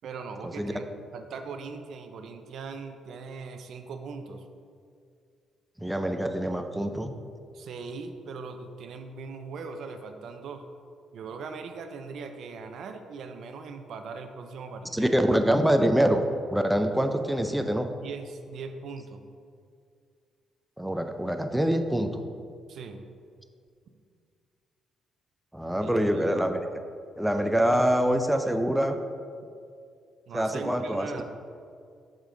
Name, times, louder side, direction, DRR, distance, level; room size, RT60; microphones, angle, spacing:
voice 1, 0.0-0.9 1.1-4.5 7.5-10.7 11.1-15.2 18.0-19.2 22.7-23.0 25.8-26.3 30.3-31.2, right 4 dB, 70° right, 7 dB, 0.5 m, -40 dB
voice 2, 5.8-7.1 14.9-16.2 16.5-17.9 20.8-22.2 25.5-26.6 27.2-29.0 30.3-31.1, equal, 5° right, 6 dB, 0.4 m, -25 dB
7.3 x 5.1 x 3.8 m, 2.3 s
cardioid pair, 90°, 0 cm